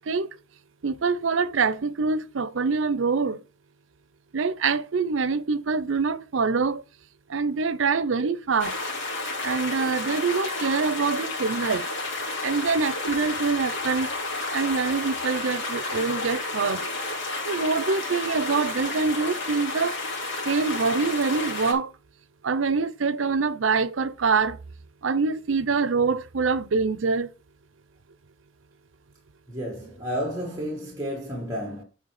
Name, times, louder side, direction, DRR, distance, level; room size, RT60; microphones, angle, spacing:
voice 1, 0.8-3.4 4.3-6.8 7.3-8.7 9.4-11.8 12.4-14.1 14.5-16.8 17.5-19.9 20.5-21.9 22.4-24.6 25.0-27.3, right 4 dB, 85° right, 0.6 m, -25 dB
sound 1, 8.6-21.7, left 2 dB, 70° left, 2.7 m, -31 dB
voice 2, 29.5-31.8, equal, 20° right, 1.8 m, -31 dB
8.3 x 4.6 x 4.9 m
head